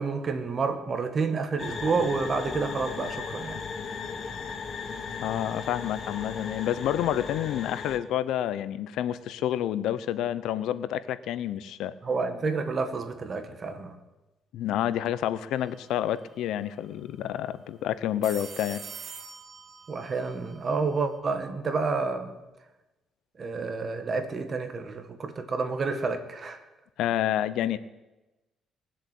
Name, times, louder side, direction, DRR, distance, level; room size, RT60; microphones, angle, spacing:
voice 1, 0.0-3.6 12.0-14.0 19.9-22.4 23.4-26.6, right 4 dB, 35° right, 8 dB, 1.8 m, -29 dB
sound 1, 1.6-8.0, left 5 dB, 40° left, 1.4 m, -36 dB
voice 2, 5.2-11.9 14.5-18.8 27.0-27.8, left 11 dB, 80° left, 15 dB, 0.8 m, -29 dB
sound 2, 15.6-15.9 16.1-16.2 18.0-21.2, right 5 dB, 55° right, 2.5 m, -45 dB
20.5 x 7.6 x 8.5 m, 1.1 s
cardioid pair, 135°, 0 cm